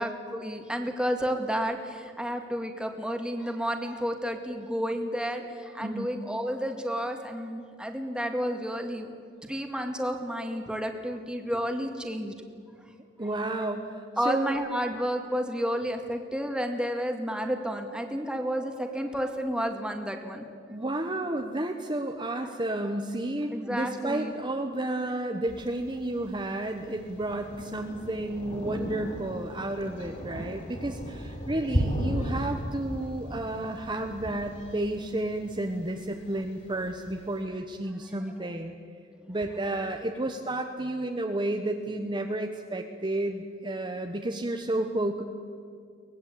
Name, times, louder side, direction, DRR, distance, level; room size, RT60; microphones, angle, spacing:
voice 1, 0.0-9.1 9.4-12.4 14.2-20.4 23.5-24.3, equal, 5° right, 4 dB, 2.0 m, -31 dB
voice 2, 5.8-6.1 13.2-14.6 20.7-38.8 39.3-45.2, right 1 dB, 25° right, 3 dB, 1.2 m, -31 dB
Thunder, 25.4-37.4, equal, 40° left, 5.3 m, -36 dB
24.0 x 19.0 x 8.7 m, 2.2 s
head